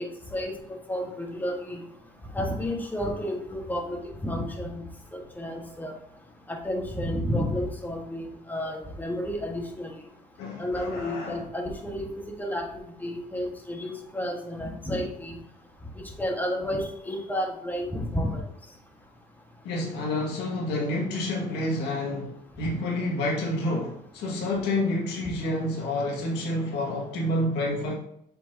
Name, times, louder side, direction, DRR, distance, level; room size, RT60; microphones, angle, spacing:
voice 1, 0.0-1.8 2.3-4.8 5.1-5.9 6.5-9.9 10.6-12.1 12.4-12.7 13.0-15.4 16.2-18.4 22.6-22.7, left 1 dB, 10° left, 1 dB, 1.5 m, -31 dB
voice 2, 10.4-11.4 19.6-27.9, left 1 dB, 85° left, -2 dB, 1.9 m, -29 dB
7.5 x 4.6 x 2.8 m, 0.74 s
cardioid pair, 110°, 17 cm